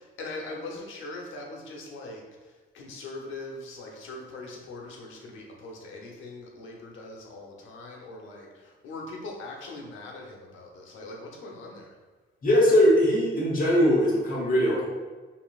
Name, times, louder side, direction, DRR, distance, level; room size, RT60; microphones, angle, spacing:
voice 1, 0.0-11.9, left 2 dB, 80° left, 0 dB, 0.9 m, -41 dB
voice 2, 12.4-14.9, equal, 45° left, -4 dB, 1.0 m, -21 dB
5.3 x 2.6 x 2.4 m, 1.3 s
cardioid pair, 90°, 20 cm